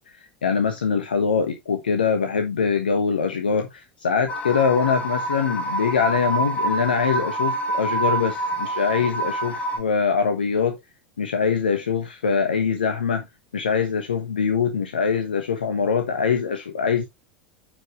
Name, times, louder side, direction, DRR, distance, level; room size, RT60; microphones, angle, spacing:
voice 1, 0.1-10.8 11.2-13.2 13.5-17.0, left 6 dB, 75° left, 1.1 m, -23 dB
sound 1, 4.3-9.8, right 2 dB, 25° left, 1.6 m, -26 dB
10.0 x 5.3 x 3.1 m
figure-of-eight pair, 80°, 5 cm